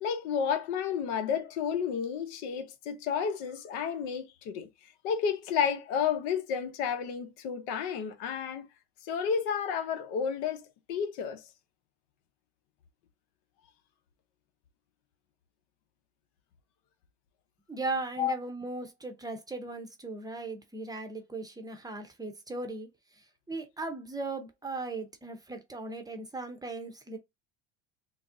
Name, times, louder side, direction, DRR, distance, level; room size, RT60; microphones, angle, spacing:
voice 1, 0.0-4.7 5.0-8.7 9.0-11.5 18.2-18.3, left 7 dB, 75° left, 0.8 m, -31 dB
voice 2, 17.7-22.9 23.2-27.2, right 3 dB, 10° right, 0.6 m, -38 dB
4.0 x 2.1 x 2.5 m
supercardioid pair, 110°, 33 cm